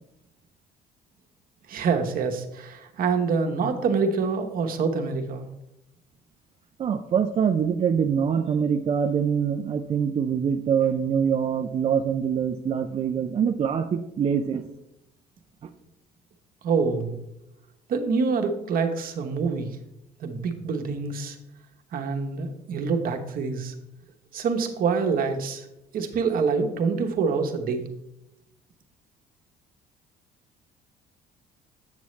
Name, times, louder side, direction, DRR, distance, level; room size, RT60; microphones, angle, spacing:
voice 1, 1.7-5.5 16.6-17.1 17.9-19.8 20.2-21.4 21.9-23.7 24.3-25.7 25.9-27.9, right 5 dB, 60° right, 5 dB, 1.0 m, -26 dB
voice 2, 6.8-14.6, right 7 dB, 35° right, 5 dB, 0.4 m, -24 dB
8.2 x 6.2 x 3.1 m, 0.88 s
cardioid pair, 110°, 17 cm